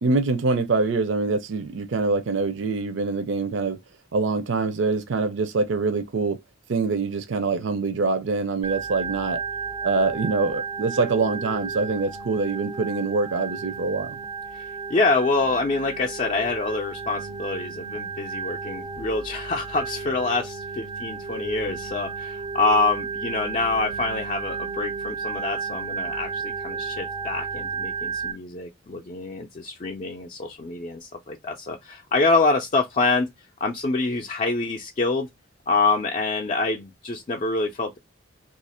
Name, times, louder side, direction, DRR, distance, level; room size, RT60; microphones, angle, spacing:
voice 1, 0.0-3.8 4.1-6.4 6.7-9.4 9.8-14.2, right 3 dB, 70° right, 0.5 m, -24 dB
Organ, 8.6-28.3, right 5 dB, 20° right, 0.4 m, -33 dB
voice 2, 14.5-33.3 33.6-35.3 35.7-38.0, left 3 dB, 35° left, 0.4 m, -26 dB
2.7 x 2.5 x 4.1 m
head